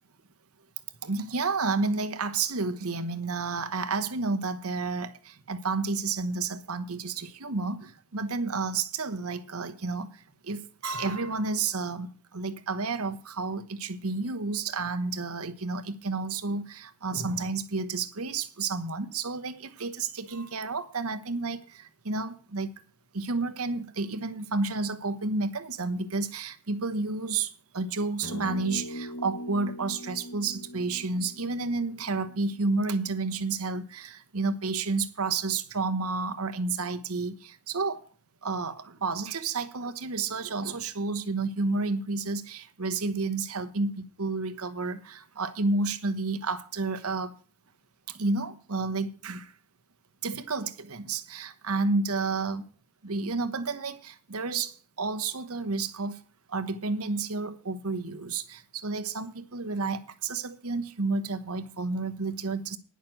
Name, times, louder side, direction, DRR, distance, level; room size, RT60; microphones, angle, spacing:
voice 1, 1.0-22.7 23.1-38.1 38.4-47.3 48.1-49.5 50.2-52.7 53.0-56.2 56.5-62.8, right 3 dB, 70° right, 1.1 m, -31 dB
sound 1, 28.2-32.8, equal, 70° left, 1.2 m, -41 dB
10.5 x 6.6 x 7.7 m
head